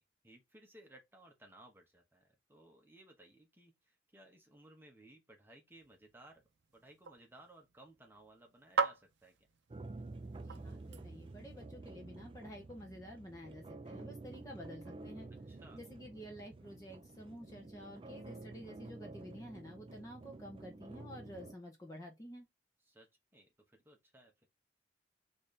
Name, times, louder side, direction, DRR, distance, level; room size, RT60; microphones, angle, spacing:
voice 1, 0.2-6.4 6.7-9.5 15.5-15.8 22.9-23.1 23.3-24.5, right 1 dB, 10° right, 0.9 m, -60 dB
sound 1, 5.7-11.5, right 4 dB, 85° right, 0.5 m, -42 dB
sound 2, 9.7-21.5, right 2 dB, 30° right, 0.3 m, -50 dB
voice 2, 10.3-15.3 15.7-22.5, equal, 20° left, 0.6 m, -50 dB
4.1 x 2.6 x 3.2 m
head